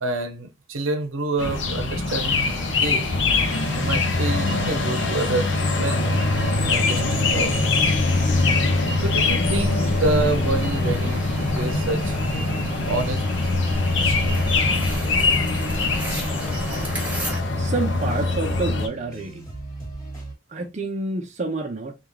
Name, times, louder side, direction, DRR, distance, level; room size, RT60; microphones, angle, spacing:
voice 1, 0.0-3.1 3.7-7.7 9.0-12.2 12.9-13.5 13.9-14.4, right 2 dB, 85° right, 0.7 m, -28 dB
sound 1, 1.4-18.9, left 3 dB, 65° left, 0.6 m, -23 dB
sound 2, 2.1-17.4, equal, 10° right, 1.0 m, -36 dB
sound 3, 12.3-20.3, right 2 dB, 15° left, 1.6 m, -39 dB
voice 2, 17.6-19.4 20.5-21.9, right 3 dB, 35° right, 0.6 m, -28 dB
3.5 x 2.4 x 3.1 m
head